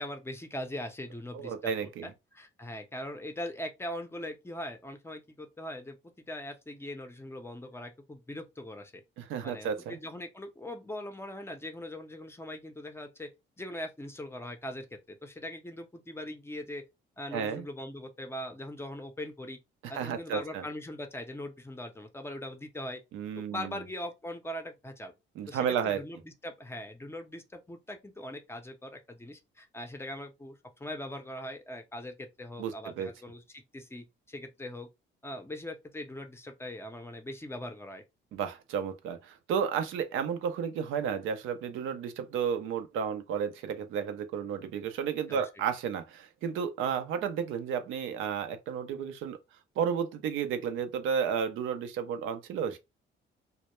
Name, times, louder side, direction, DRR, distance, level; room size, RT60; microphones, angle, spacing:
voice 1, 0.0-6.0 6.3-9.0 9.4-13.3 13.6-16.8 17.2-19.6 19.9-23.0 23.3-25.1 25.5-34.9 35.2-38.0 45.3-45.4, left 1 dB, 10° left, 0.5 m, -41 dB
voice 2, 1.3-2.1 9.2-10.0 17.3-17.6 19.8-20.6 23.1-23.8 25.4-26.0 32.6-33.1 38.3-49.4 49.8-52.8, right 7 dB, 85° right, 0.5 m, -32 dB
2.1 x 2.0 x 2.9 m
cardioid pair, 90°, 20 cm